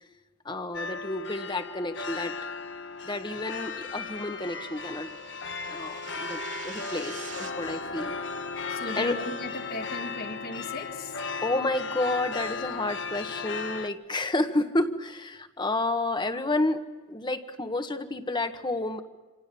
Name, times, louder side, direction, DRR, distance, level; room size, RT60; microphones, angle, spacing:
voice 1, 0.5-2.4 3.0-5.1 5.7-8.2 9.0-9.2 11.4-16.8 17.1-19.0, left 2 dB, 25° left, 8 dB, 1.6 m, -30 dB
sound 1, 0.7-13.9, left 4 dB, 75° left, 1.4 m, -36 dB
sound 2, 3.1-7.5, right 8 dB, 85° right, 3.6 m, -47 dB
voice 2, 8.7-11.1, left 2 dB, 55° left, 4 dB, 2.2 m, -37 dB
27.0 x 27.0 x 7.1 m, 1.3 s
head